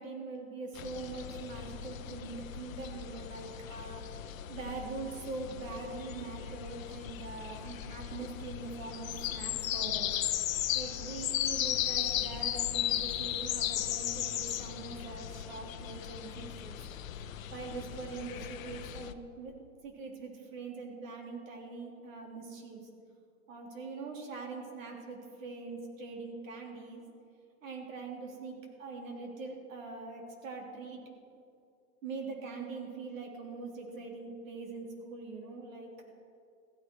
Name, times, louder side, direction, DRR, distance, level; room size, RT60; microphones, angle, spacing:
voice 1, 0.0-10.1 10.7-16.8 17.5-19.5 19.8-22.9 23.5-27.0 27.6-31.0 32.0-35.9, right 3 dB, 65° right, 0 dB, 3.4 m, -43 dB
sound 1, 0.7-19.1, left 11 dB, 65° left, 0.8 m, -36 dB
15.5 x 14.5 x 4.7 m, 2.4 s
supercardioid pair, 175°, 44 cm